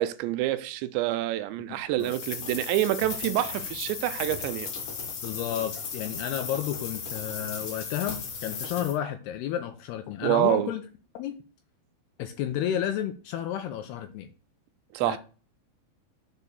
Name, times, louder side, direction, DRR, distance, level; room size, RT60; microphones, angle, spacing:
voice 1, 0.0-4.7 10.2-10.7 14.9-15.2, right 14 dB, 80° right, 2.8 m, -27 dB
voice 2, 1.7-2.1 5.2-10.8 11.1-11.4 12.2-14.3 15.0-15.2, left 10 dB, 80° left, 2.4 m, -32 dB
sound 1, 2.0-9.0, left 5 dB, 50° left, 2.6 m, -36 dB
7.2 x 4.3 x 6.7 m
omnidirectional pair, 5.2 m